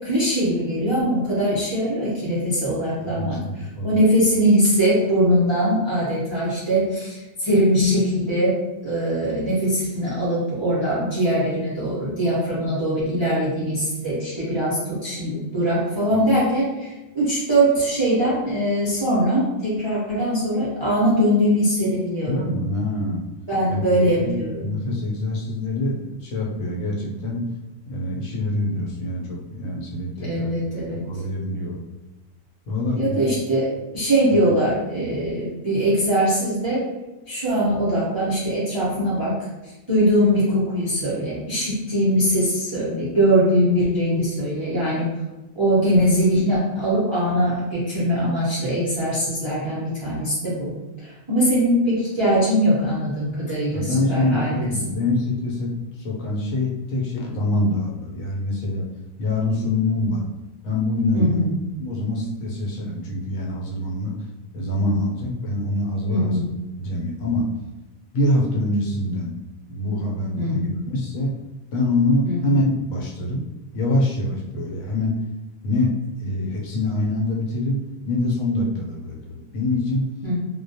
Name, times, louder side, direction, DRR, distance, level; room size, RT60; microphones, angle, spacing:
voice 1, 0.0-22.5 23.5-24.7 30.2-31.0 32.9-36.8 37.3-39.4 39.9-45.1 45.6-50.7 51.0-54.5 54.9-55.0 61.1-61.5 66.1-66.5 70.4-70.7 72.2-72.4 80.2-80.3, equal, 40° right, -10 dB, 0.3 m, -21 dB
voice 2, 3.1-3.4 3.7-3.9 16.1-16.2 22.3-23.2 23.7-27.5 27.9-30.5 31.0-31.8 32.7-33.2 34.3-34.4 53.7-55.7 56.0-58.8 59.2-60.2 60.6-61.4 61.8-64.2 64.5-66.4 66.8-67.5 68.1-69.3 69.7-71.4 71.7-73.4 73.7-75.2 75.6-80.1, left 2 dB, 75° left, -2 dB, 1.0 m, -25 dB
2.3 x 2.1 x 2.6 m, 1.1 s
omnidirectional pair, 1.5 m